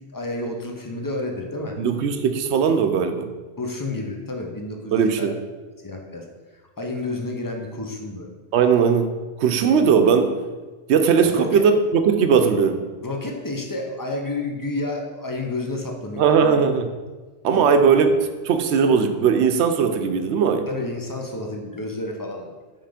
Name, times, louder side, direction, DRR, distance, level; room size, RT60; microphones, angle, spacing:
voice 1, 0.1-1.8 3.6-5.3 5.8-6.3 6.8-8.4 11.2-11.6 13.0-16.5 17.8-17.9 20.7-22.5, left 2 dB, 20° left, 1 dB, 0.6 m, -30 dB
voice 2, 1.8-3.3 4.9-5.3 8.5-9.1 9.4-10.4 10.9-12.8 16.2-16.9 17.4-18.1 18.4-20.7, right 6 dB, 85° right, 7 dB, 0.9 m, -18 dB
5.7 x 3.6 x 5.0 m, 1.3 s
omnidirectional pair, 1.1 m